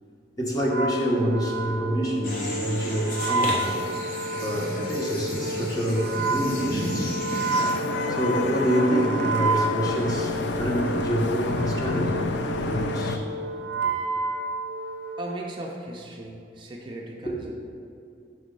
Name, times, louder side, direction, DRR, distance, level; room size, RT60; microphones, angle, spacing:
voice 1, 0.4-3.7 4.3-7.1 8.1-12.3 12.7-13.2 13.8-13.9 17.2-17.3, equal, 20° left, -2 dB, 0.9 m, -27 dB
Wind instrument woodwind instrument, 0.6-15.3, right 2 dB, 80° right, 0.4 m, -30 dB
sound 1, 2.2-7.7, left 1 dB, 50° left, 1.0 m, -33 dB
Vehicle horn car horn honking / Traffic noise roadway noise, 7.5-13.2, left 3 dB, 85° left, 0.4 m, -29 dB
voice 2, 15.2-17.5, right 1 dB, 30° right, -1 dB, 0.5 m, -37 dB
6.0 x 4.2 x 5.2 m, 2.5 s
head